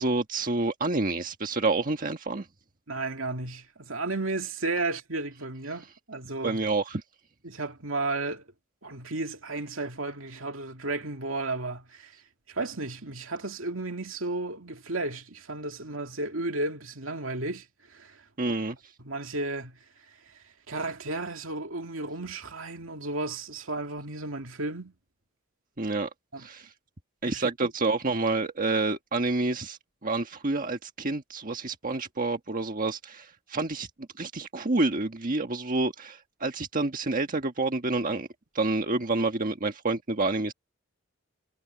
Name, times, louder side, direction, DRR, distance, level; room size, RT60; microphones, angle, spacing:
voice 1, 0.0-2.5 6.4-7.0 18.4-18.8 25.8-26.1 26.4-26.7 27.2-33.9 34.2-38.3 38.5-40.5, right 3 dB, 40° right, 1.5 m, -28 dB
voice 2, 2.9-6.6 7.4-8.4 8.8-12.1 12.5-18.5 19.0-19.8 20.7-24.9 26.3-26.5 27.3-27.7, right 2 dB, 70° right, 2.6 m, -33 dB
head